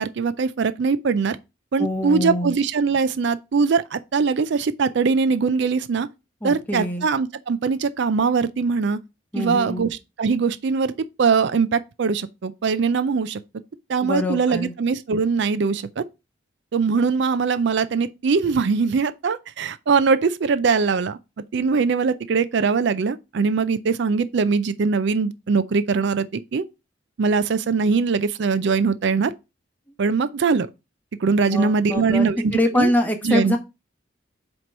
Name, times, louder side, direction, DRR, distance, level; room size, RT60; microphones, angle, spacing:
voice 1, 0.0-1.4 1.7-6.1 6.4-9.0 9.4-13.4 13.9-16.1 16.7-21.2 21.5-26.6 27.2-29.3 30.0-30.7 31.2-32.9 33.2-33.6, right 5 dB, 60° right, 0.4 m, -21 dB
voice 2, 1.8-2.5 6.4-7.1 9.3-9.9 14.0-14.7 31.5-32.3 32.5-33.6, left 1 dB, 10° left, 0.9 m, -24 dB
7.7 x 3.0 x 5.2 m
head